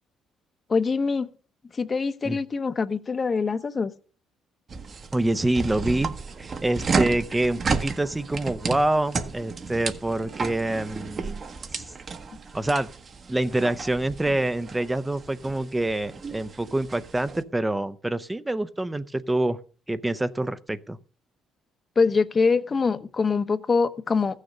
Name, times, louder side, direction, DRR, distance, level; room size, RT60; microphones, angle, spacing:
voice 1, 0.7-1.3 1.7-3.9 22.0-24.4, left 4 dB, 35° left, 12 dB, 0.9 m, -24 dB
sound 1, 4.7-17.4, right 4 dB, 45° right, 1.2 m, -33 dB
voice 2, 5.1-6.1 6.4-11.4 11.7-11.9 12.5-12.9 13.3-19.6 19.9-21.0, right 1 dB, 15° right, 12 dB, 0.6 m, -26 dB
14.5 x 6.6 x 6.6 m, 0.42 s
cardioid pair, 80°, 0 cm